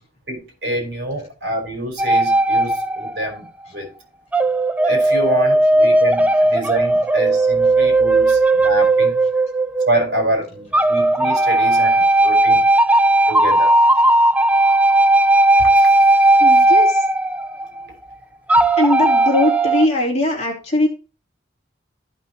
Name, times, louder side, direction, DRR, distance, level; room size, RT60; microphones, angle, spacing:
voice 1, 0.3-3.9 4.8-9.2 9.9-12.6 13.3-13.7 15.6-15.9, right 1 dB, 65° right, 4.6 m, -26 dB
sound 1, 2.0-3.4 4.3-10.2 10.7-17.8 18.5-19.9, right 2 dB, 10° right, 0.3 m, -16 dB
voice 2, 16.4-17.1 18.8-20.9, left 1 dB, 35° left, 3.0 m, -20 dB
15.0 x 6.0 x 2.9 m
head